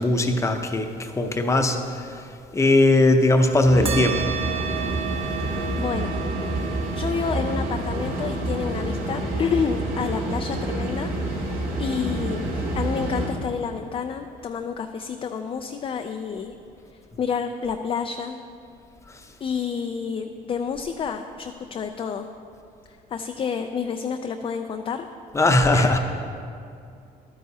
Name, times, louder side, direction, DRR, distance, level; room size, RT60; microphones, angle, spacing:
voice 1, 0.0-2.2 2.5-4.3 25.3-26.0, left 2 dB, 15° left, 5 dB, 0.7 m, -19 dB
sound 1, 3.6-13.3, right 1 dB, 60° right, 2.1 m, -28 dB
sound 2, 3.9-12.8, right 7 dB, 35° right, 0.9 m, -35 dB
voice 2, 5.7-6.2 6.9-11.1 11.4-12.5 12.7-16.5 17.2-18.4 19.4-22.3 23.1-25.1 25.7-26.0, left 6 dB, 35° left, 6 dB, 0.4 m, -29 dB
12.0 x 9.4 x 2.8 m, 2.4 s
cardioid pair, 110°, 17 cm